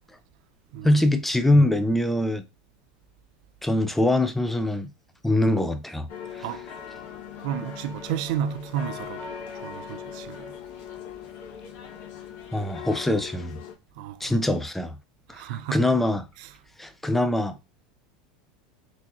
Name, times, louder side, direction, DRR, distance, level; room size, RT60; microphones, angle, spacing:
voice 1, 0.8-2.4 3.6-4.9 5.2-6.4 12.5-13.6 14.2-15.0 15.3-16.3 16.8-17.6, left 1 dB, 5° left, 0.4 m, -23 dB
sound 1, 6.1-13.7, left 7 dB, 55° left, 0.8 m, -40 dB
voice 2, 7.4-10.5 14.0-14.3 15.3-15.9, right 9 dB, 70° right, 0.4 m, -32 dB
3.9 x 2.9 x 2.3 m
supercardioid pair, 115°, 4 cm